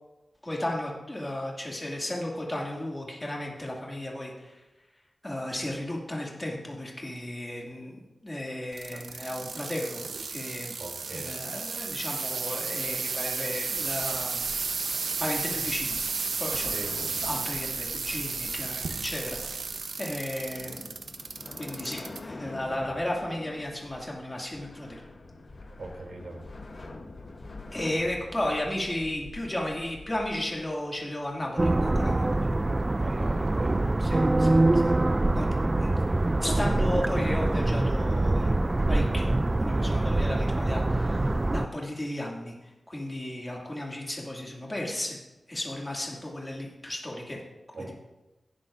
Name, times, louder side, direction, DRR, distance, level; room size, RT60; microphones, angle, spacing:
voice 1, 0.4-4.6 5.2-10.0 10.3-10.7 11.1-14.4 15.2-16.0 16.4-16.7 17.2-19.6 20.0-20.8 21.6-25.0 27.7-32.5 34.0-34.9 35.3-35.5 35.8-36.0 36.4-38.6 38.9-39.3 39.6-45.2 45.5-47.4, left 1 dB, 20° left, -2 dB, 2.3 m, -34 dB
sound 1, 8.7-22.2 22.7-23.2 23.8-23.9, right 4 dB, 90° right, 0.9 m, -33 dB
voice 2, 10.8-11.4 16.7-16.9 25.8-26.4 33.0-33.9 47.7-47.9, right 2 dB, 70° right, 0 dB, 2.8 m, -40 dB
sound 2, 13.2-31.8, left 2 dB, 40° left, 1.0 m, -46 dB
sound 3, 31.6-41.7, right 2 dB, 25° right, 0.3 m, -24 dB
17.5 x 11.5 x 2.6 m, 1.0 s
wide cardioid pair, 130°, 0 cm